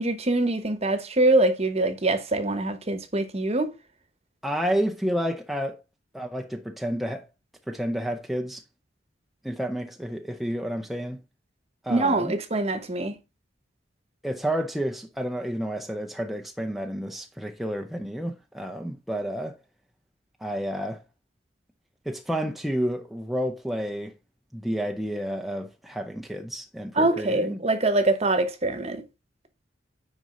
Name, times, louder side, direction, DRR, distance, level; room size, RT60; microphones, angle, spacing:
voice 1, 0.0-3.7 11.9-13.2 27.0-29.0, right 2 dB, 35° right, 1.1 m, -24 dB
voice 2, 4.4-5.8 6.1-7.3 7.7-8.6 9.4-11.2 11.8-12.4 14.2-19.6 20.4-21.0 22.1-24.1 24.5-27.6, equal, ahead, 0.6 m, -30 dB
9.4 x 5.3 x 3.8 m
head